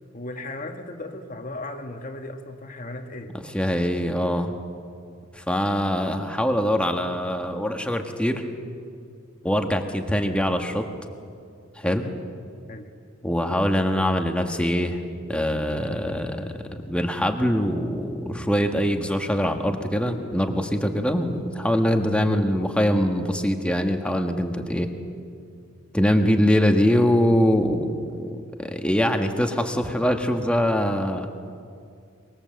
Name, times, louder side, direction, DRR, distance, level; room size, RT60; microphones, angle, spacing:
voice 1, 0.1-3.4 11.8-12.2 12.7-12.9, left 2 dB, 40° left, 5 dB, 1.6 m, -36 dB
voice 2, 3.5-4.5 5.4-8.4 9.4-10.8 11.8-12.0 13.2-15.0 15.3-24.9 25.9-31.5, equal, 5° left, 4 dB, 1.6 m, -23 dB
24.0 x 22.5 x 7.8 m, 2.3 s
head